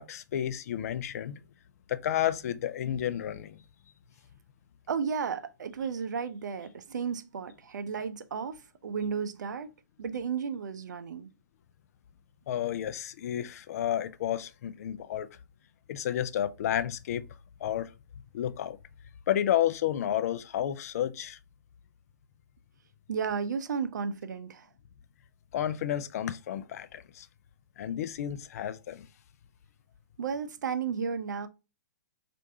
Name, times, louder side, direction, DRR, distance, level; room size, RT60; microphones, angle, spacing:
voice 1, 0.0-1.4 1.9-3.6 12.5-15.3 15.9-17.2 17.6-17.9 18.3-18.8 19.3-21.4 25.5-27.3 27.8-29.1, left 11 dB, 55° left, 0.4 m, -31 dB
voice 2, 4.9-9.7 10.0-11.3 23.1-24.7 30.2-31.5, right 6 dB, 75° right, 0.5 m, -33 dB
4.5 x 2.5 x 2.7 m
hypercardioid pair, 135°, 10 cm